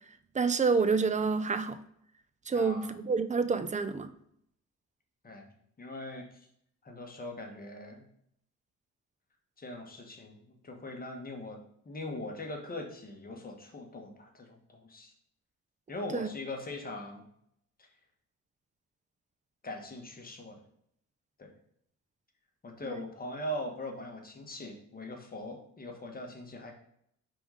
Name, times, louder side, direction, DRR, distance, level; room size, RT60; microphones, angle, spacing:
voice 1, 0.3-1.8 2.5-4.1 16.1-16.3 22.8-23.0, right 5 dB, 25° right, 11 dB, 0.5 m, -28 dB
voice 2, 2.5-2.9 5.2-5.5 5.8-6.2 6.8-8.0 9.6-11.6 11.8-15.1 15.9-17.2 19.6-20.6 21.4-21.5 22.6-26.7, left 1 dB, 30° left, 2 dB, 1.4 m, -41 dB
4.9 x 3.9 x 4.9 m, 0.70 s
cardioid pair, 90°, 30 cm